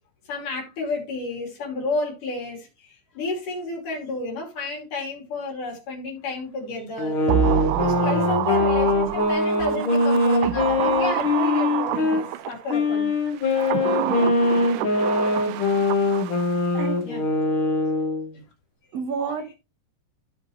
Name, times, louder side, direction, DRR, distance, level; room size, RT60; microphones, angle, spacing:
voice 1, 0.3-7.2 7.8-13.1 17.1-17.2 18.4-18.5, left 3 dB, 65° left, 4.4 m, -31 dB
sound 1, 7.0-12.2 12.7-18.3, left 3 dB, 45° left, 2.1 m, -22 dB
sound 2, 7.3-12.7 13.4-16.6 16.9-17.0, right 12 dB, 80° right, 2.0 m, -27 dB
voice 2, 14.0-14.5 16.7-17.0 18.9-19.5, right 6 dB, 50° right, 2.5 m, -30 dB
15.0 x 5.2 x 2.9 m
omnidirectional pair, 4.0 m